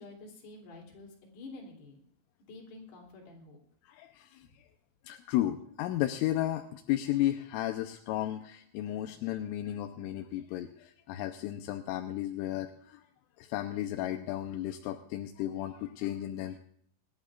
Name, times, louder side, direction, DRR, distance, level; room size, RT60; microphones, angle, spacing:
voice 1, 0.0-2.0 2.5-3.6, left 2 dB, 55° left, -1 dB, 4.8 m, -49 dB
voice 2, 3.8-4.7 5.1-13.0 13.4-16.6, left 13 dB, 85° left, 5 dB, 3.2 m, -34 dB
26.0 x 11.5 x 2.4 m, 0.64 s
omnidirectional pair, 5.8 m